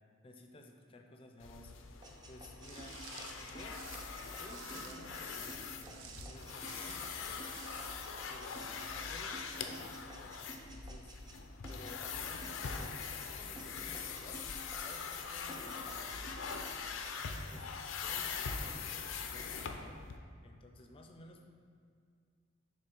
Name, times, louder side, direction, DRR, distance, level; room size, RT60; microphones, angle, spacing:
voice 1, 0.2-1.7 2.3-3.0 3.4-3.9 4.3-7.6 8.3-11.2 11.7-16.3 17.5-17.7 18.0-20.0 20.4-21.4, left 1 dB, 30° left, 3 dB, 0.5 m, -55 dB
sound 1, 1.4-20.2, left 5 dB, 90° left, 0.5 m, -42 dB
sound 2, 2.0-11.4 11.6-13.3 13.5-15.2 15.5-17.1, right 2 dB, 20° right, 0.5 m, -53 dB
Walk footsteps, 2.6-8.1, right 7 dB, 75° right, 0.5 m, -53 dB
7.0 x 3.2 x 4.4 m, 2.2 s
head